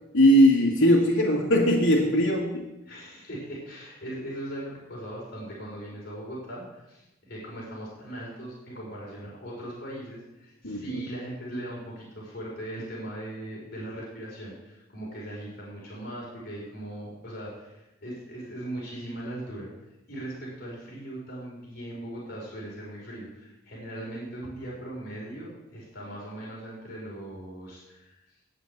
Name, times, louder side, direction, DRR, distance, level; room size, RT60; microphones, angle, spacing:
voice 1, 0.1-2.7 10.6-11.0, equal, 90° left, -6 dB, 1.8 m, -20 dB
voice 2, 2.9-19.7 20.1-28.1, right 1 dB, 50° left, -5 dB, 4.7 m, -39 dB
9.2 x 8.2 x 8.0 m, 0.96 s
head